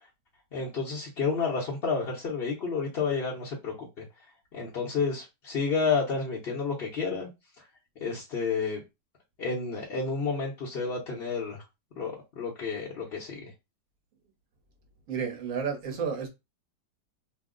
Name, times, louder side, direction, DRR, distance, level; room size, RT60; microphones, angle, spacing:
voice 1, 0.5-4.0 4.5-7.3 8.0-8.8 9.4-11.6 12.0-13.5, left 5 dB, 50° left, 0.7 m, -30 dB
voice 2, 15.1-16.3, right 6 dB, 60° right, 1.1 m, -31 dB
2.9 x 2.0 x 3.6 m
omnidirectional pair, 1.9 m